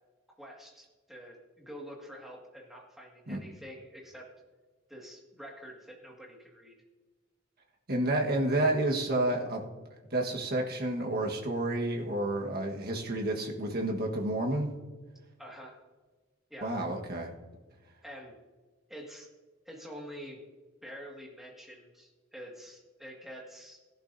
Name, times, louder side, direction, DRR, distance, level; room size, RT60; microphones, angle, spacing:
voice 1, 0.4-4.3 4.9-6.8 15.4-15.8 16.5-16.7 18.0-18.3 18.9-19.3 19.7-20.4 20.8-23.8, equal, ahead, -2 dB, 1.9 m, -47 dB
voice 2, 7.9-9.6 10.1-14.7 16.6-17.3, right 1 dB, 50° right, 1 dB, 1.5 m, -30 dB
17.0 x 11.5 x 2.7 m, 1.3 s
head